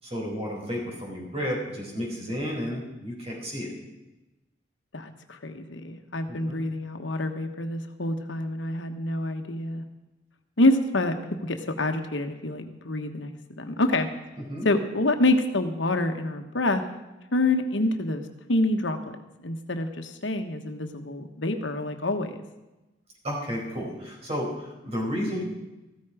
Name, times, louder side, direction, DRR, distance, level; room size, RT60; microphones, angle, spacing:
voice 1, 0.0-3.7 6.3-6.6 14.5-14.7 23.2-25.4, equal, 35° right, -2 dB, 4.9 m, -32 dB
voice 2, 4.9-9.8 10.6-14.1 14.6-16.8 17.3-19.2 19.4-22.4, left 2 dB, 75° left, 6 dB, 1.3 m, -27 dB
15.0 x 13.5 x 5.0 m, 1.0 s
head